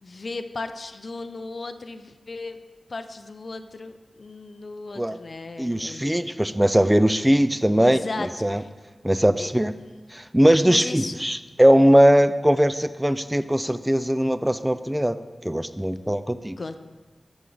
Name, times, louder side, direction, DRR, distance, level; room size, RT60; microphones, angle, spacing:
voice 1, 0.0-2.6 2.9-6.3 7.8-8.7 9.4-9.5 10.6-11.3 16.6-16.8, left 3 dB, 60° left, 10 dB, 0.4 m, -36 dB
voice 2, 5.6-8.6 9.0-9.7 10.1-15.2 15.4-16.6, equal, 10° right, 12 dB, 0.3 m, -20 dB
7.1 x 6.2 x 3.9 m, 1.3 s
cardioid pair, 45°, 0 cm